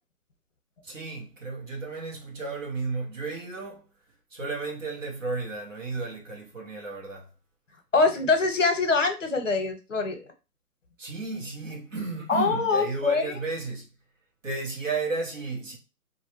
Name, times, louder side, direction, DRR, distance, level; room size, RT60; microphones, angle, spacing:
voice 1, 0.8-3.9 4.3-7.3 11.0-13.9 14.4-15.8, right 3 dB, 55° right, 1.1 m, -33 dB
voice 2, 7.9-10.2 12.3-13.3, left 4 dB, 55° left, 0.8 m, -24 dB
2.5 x 2.1 x 2.9 m
figure-of-eight pair, 160°, 47 cm